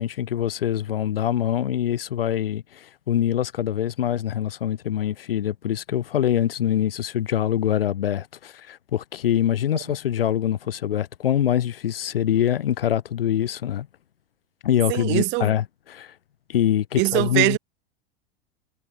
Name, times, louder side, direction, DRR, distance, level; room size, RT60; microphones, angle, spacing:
voice 1, 0.0-13.9 14.6-15.6 15.9-16.1 16.5-17.6, left 10 dB, 70° left, 0.9 m, -24 dB
voice 2, 14.9-15.5 17.0-17.6, right 26 dB, 35° right, 0.8 m, -22 dB
figure-of-eight pair, 85°, 30 cm